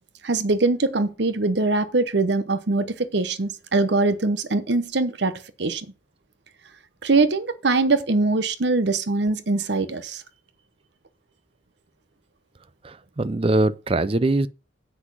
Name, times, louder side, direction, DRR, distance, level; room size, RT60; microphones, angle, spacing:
voice 1, 0.2-5.3 5.6-5.9 7.0-10.2, right 3 dB, 60° right, 0.8 m, -22 dB
voice 2, 12.8-14.5, right 2 dB, 30° right, 0.5 m, -22 dB
7.9 x 6.1 x 6.1 m
head